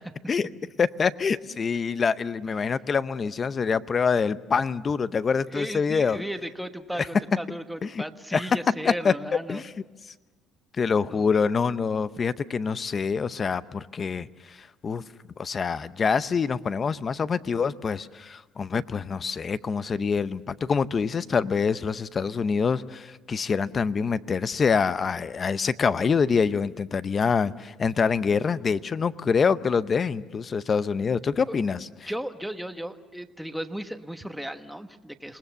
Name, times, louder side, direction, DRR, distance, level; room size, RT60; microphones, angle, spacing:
voice 1, 0.8-6.2 7.0-7.1 7.8-8.0 8.3-8.5 8.8-9.1 9.5-9.7 10.7-15.0 15.4-31.9, left 5 dB, 30° left, 15 dB, 0.7 m, -25 dB
voice 2, 5.5-9.6 11.1-11.3 31.5-31.6 32.1-35.4, equal, ahead, 8 dB, 1.2 m, -35 dB
27.5 x 20.0 x 7.1 m, 1.3 s
cardioid pair, 125°, 0 cm